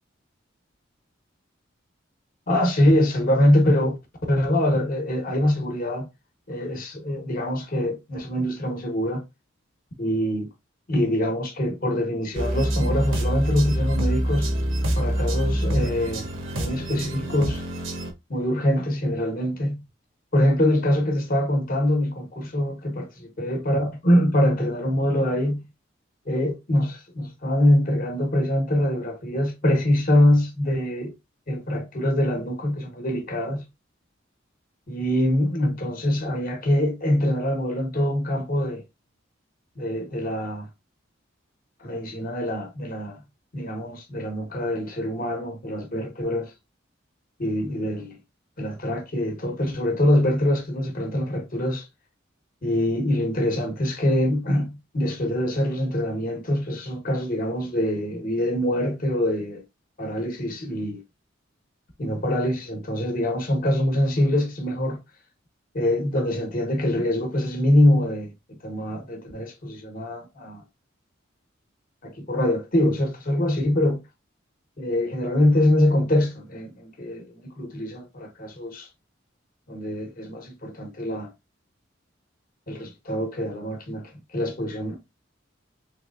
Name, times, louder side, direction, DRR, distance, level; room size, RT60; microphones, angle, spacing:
voice 1, 2.5-4.0 4.3-6.1 6.5-9.2 10.0-10.5 10.9-14.5 15.0-16.3 16.6-17.6 18.3-19.8 20.3-25.6 26.3-31.1 31.5-33.6 34.9-38.8 39.8-40.7 41.8-43.2 43.5-46.5 47.4-48.2 48.6-51.9 52.6-59.6 60.0-61.0 62.0-65.0 65.7-70.6 72.0-74.0 74.8-78.9 79.7-81.3 82.7-85.0, left 1 dB, 45° left, 1.0 m, -24 dB
sound 1, 12.3-18.1, equal, 75° right, 0.9 m, -26 dB
3.3 x 3.2 x 2.4 m
head